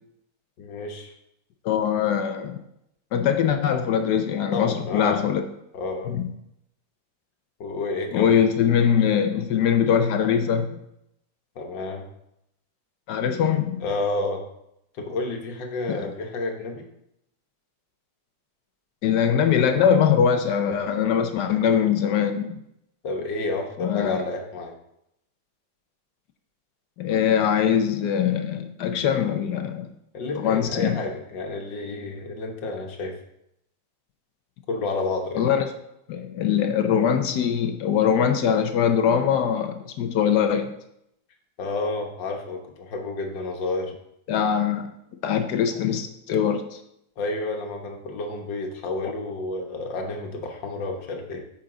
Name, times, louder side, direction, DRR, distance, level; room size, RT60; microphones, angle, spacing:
voice 1, 0.6-1.1 4.5-5.2 5.7-6.2 7.6-8.4 11.6-12.1 13.8-14.4 14.9-16.9 23.0-24.7 30.1-33.2 34.7-35.5 41.6-43.9 47.2-51.4, left 2 dB, 85° left, 3 dB, 1.9 m, -30 dB
voice 2, 1.6-2.6 3.1-5.4 6.1-6.2 8.1-10.8 13.1-13.8 15.9-16.0 19.0-22.6 23.8-24.2 27.0-29.9 30.3-31.0 35.3-35.7 36.1-40.7 44.3-44.9 45.2-46.8, left 8 dB, 70° left, 7 dB, 1.2 m, -22 dB
8.9 x 5.9 x 3.8 m, 0.80 s
omnidirectional pair, 1.9 m